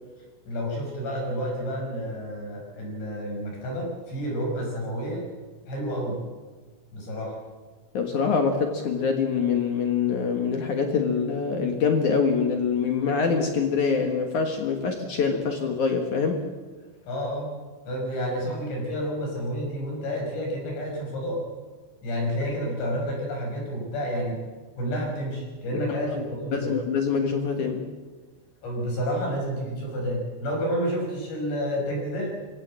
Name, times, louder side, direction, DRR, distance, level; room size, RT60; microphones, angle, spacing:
voice 1, 0.5-5.3 5.7-6.2 6.9-7.4 17.1-17.6 17.8-21.5 22.0-24.4 24.8-26.8 28.6-32.4, equal, 55° left, 0 dB, 7.9 m, -30 dB
voice 2, 7.9-16.4 25.7-25.8 26.2-27.9, left 5 dB, 70° left, 4 dB, 1.8 m, -25 dB
24.0 x 16.5 x 7.7 m, 1.4 s
omnidirectional pair, 6.0 m